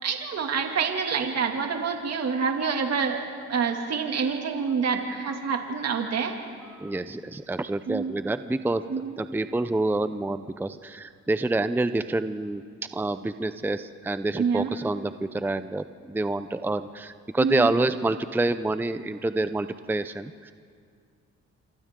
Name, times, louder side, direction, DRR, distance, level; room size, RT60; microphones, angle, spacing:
voice 1, 0.0-3.2 3.5-6.3 7.9-8.2 8.9-9.1 14.4-14.7 17.4-17.7, right 6 dB, 55° right, 3 dB, 2.4 m, -27 dB
voice 2, 6.7-8.8 9.2-12.6 12.9-20.5, right 2 dB, 5° right, 11 dB, 0.6 m, -27 dB
26.5 x 26.5 x 3.8 m, 2.1 s
cardioid pair, 90°, 30 cm